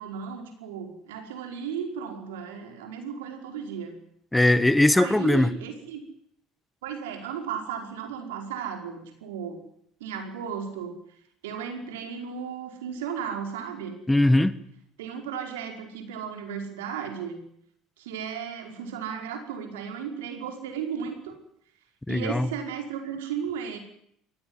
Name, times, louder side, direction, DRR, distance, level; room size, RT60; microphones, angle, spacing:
voice 1, 0.0-4.0 5.0-6.0 6.8-9.6 10.0-11.0 11.4-14.0 15.0-17.4 18.0-21.4 22.1-23.8, right 7 dB, 80° right, 5.2 m, -35 dB
voice 2, 4.3-5.5 14.1-14.6 22.1-22.5, left 1 dB, 10° left, 1.6 m, -20 dB
23.5 x 18.0 x 9.8 m
hypercardioid pair, 75°, 0 cm